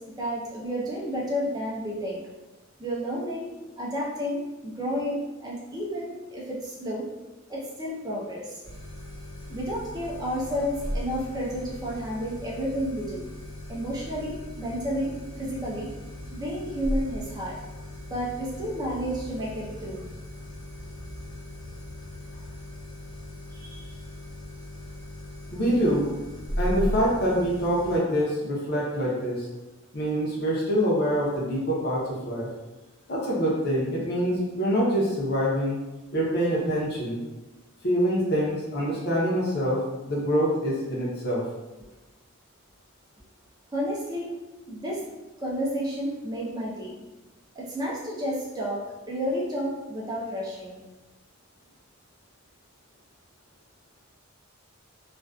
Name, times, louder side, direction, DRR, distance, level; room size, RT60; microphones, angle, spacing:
voice 1, 0.2-2.2 2.8-3.5 3.8-7.0 7.5-8.6 9.5-13.2 13.7-15.9 16.3-17.6 18.1-20.0 23.5-23.9 43.7-44.3 44.7-45.0 45.4-46.9 47.6-48.8 49.1-50.8, equal, 20° right, -5 dB, 0.4 m, -31 dB
sound 1, 8.6-28.0, equal, 70° left, 1.0 m, -37 dB
voice 2, 25.5-26.1 26.6-29.5 29.9-32.5 33.1-35.8 36.1-37.2 37.8-41.4, equal, 45° left, -4 dB, 0.6 m, -25 dB
2.4 x 2.2 x 2.3 m, 1.1 s
head